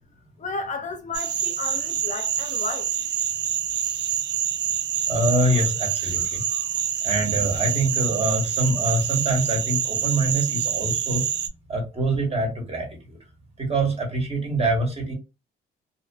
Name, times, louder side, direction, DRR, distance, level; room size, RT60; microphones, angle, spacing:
voice 1, 0.4-2.9, left 4 dB, 40° left, 0.4 m, -33 dB
sound 1, 1.1-11.5, right 9 dB, 60° right, 0.4 m, -26 dB
voice 2, 5.1-6.6 7.0-11.2 11.7-13.2 13.6-15.1, right 1 dB, 30° right, 1.2 m, -25 dB
2.6 x 2.3 x 2.3 m
cardioid pair, 90°, 20 cm